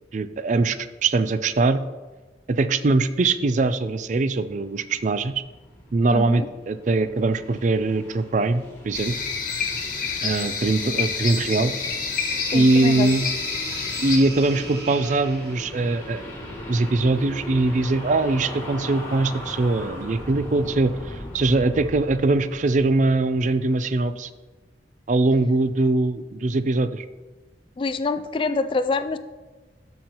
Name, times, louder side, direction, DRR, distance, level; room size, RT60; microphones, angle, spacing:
voice 1, 0.1-1.8 2.5-5.3 5.9-9.1 10.2-11.7 12.5-13.2 14.0-16.2 16.7-24.3 25.1-27.0, right 2 dB, 45° right, 12 dB, 0.4 m, -22 dB
sound 1, 4.4-24.0, equal, 15° left, 1.8 m, -39 dB
voice 2, 6.1-6.5 12.5-13.1 27.8-29.2, left 3 dB, 30° left, 11 dB, 0.3 m, -26 dB
sound 2, 8.9-14.2, left 5 dB, 50° left, 1.3 m, -28 dB
sound 3, 11.7-15.8, right 3 dB, 65° right, 1.4 m, -38 dB
12.5 x 5.6 x 2.9 m, 1.2 s
head